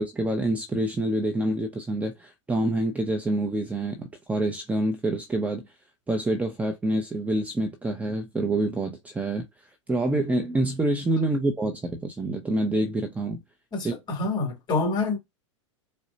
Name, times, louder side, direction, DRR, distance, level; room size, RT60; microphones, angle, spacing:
voice 1, 0.0-5.7 6.1-9.5 9.9-13.4 13.8-13.9, right 1 dB, 10° right, 0.7 m, -27 dB
voice 2, 13.7-15.2, left 3 dB, 25° left, 2.2 m, -27 dB
4.8 x 2.1 x 2.7 m
hypercardioid pair, 115°, 16 cm